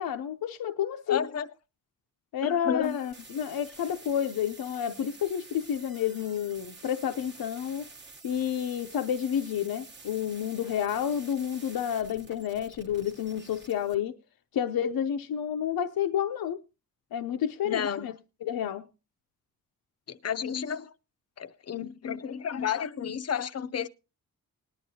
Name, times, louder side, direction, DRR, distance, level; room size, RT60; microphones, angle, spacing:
voice 1, 0.0-1.2 2.3-7.8 8.2-14.2 14.5-16.6 17.1-18.1 18.4-18.9, left 9 dB, 85° left, 0.6 m, -30 dB
voice 2, 1.1-1.5 2.4-3.0 17.6-18.1 20.1-20.9 21.4-23.9, left 7 dB, 45° left, 0.5 m, -32 dB
sound 1, 2.8-13.9, right 3 dB, 30° right, 0.9 m, -49 dB
20.0 x 10.0 x 2.7 m
wide cardioid pair, 150°, 35 cm